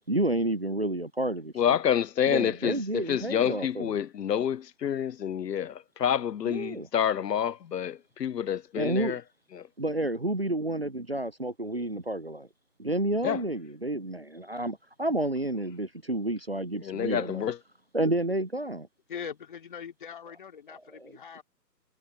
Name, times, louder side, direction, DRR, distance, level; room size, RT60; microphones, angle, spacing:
voice 1, 0.1-1.8 2.3-4.0 6.4-6.9 8.8-9.2 9.8-12.5 12.8-17.5 17.9-18.9 21.0-21.1, right 1 dB, 40° right, 0.5 m, -30 dB
voice 2, 1.6-9.2 9.5-9.7 13.2-13.4 16.8-17.6, left 9 dB, 75° left, 0.6 m, -28 dB
voice 3, 19.1-21.4, left 7 dB, 30° left, 2.5 m, -41 dB
figure-of-eight pair, 155°, 50 cm